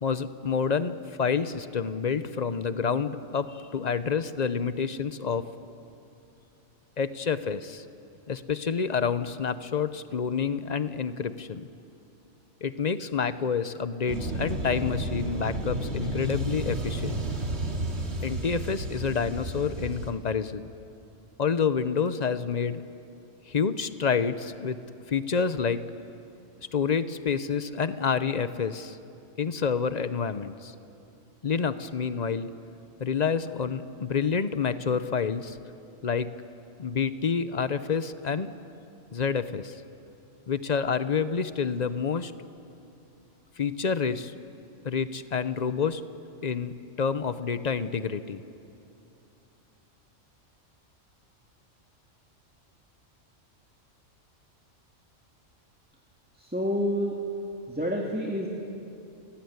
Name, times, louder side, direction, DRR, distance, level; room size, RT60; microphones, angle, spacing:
voice 1, 0.0-5.5 7.0-7.8 8.3-11.7 12.6-17.2 18.2-20.6 21.4-22.8 23.5-24.8 25.1-25.8 26.7-29.0 29.4-30.7 31.4-32.5 33.0-35.6 36.0-36.3 36.8-38.5 39.1-39.8 40.5-42.3 43.6-44.3 44.8-46.0 46.4-48.4, left 6 dB, 40° left, 13 dB, 0.8 m, -28 dB
sound 1, 14.1-20.1, right 1 dB, 55° right, 2.5 m, -32 dB
voice 2, 56.4-57.2 57.7-58.5, equal, 5° right, -1 dB, 2.0 m, -28 dB
30.0 x 17.5 x 9.6 m, 2.7 s
omnidirectional pair, 1.3 m